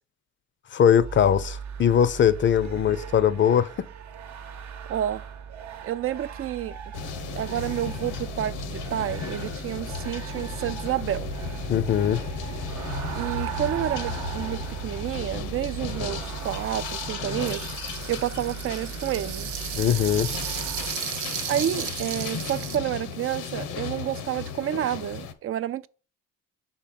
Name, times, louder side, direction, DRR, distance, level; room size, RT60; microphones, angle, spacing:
voice 1, 0.7-3.9 11.7-12.2 19.8-20.3, left 9 dB, 40° left, 0.5 m, -21 dB
sound 1, 1.0-20.9, right 7 dB, 65° right, 0.9 m, -37 dB
voice 2, 4.9-5.2 5.8-6.8 7.4-11.3 13.1-17.7 18.1-19.5 21.5-25.9, right 11 dB, 50° right, 0.4 m, -29 dB
sound 2, 6.9-25.3, left 6 dB, 85° left, 1.0 m, -35 dB
sound 3, 17.4-22.8, right 11 dB, 90° right, 0.6 m, -35 dB
5.5 x 4.4 x 5.2 m
cardioid pair, 90°, 30 cm